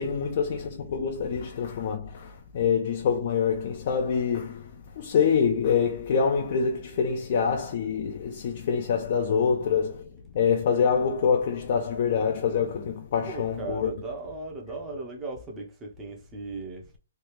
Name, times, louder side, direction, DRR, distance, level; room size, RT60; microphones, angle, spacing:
voice 1, 0.0-4.7 5.0-10.1 10.3-13.9, left 6 dB, 50° left, 0.4 m, -25 dB
voice 2, 13.3-17.0, right 3 dB, 15° right, 0.7 m, -37 dB
3.2 x 2.4 x 3.1 m
hypercardioid pair, 145°, 0 cm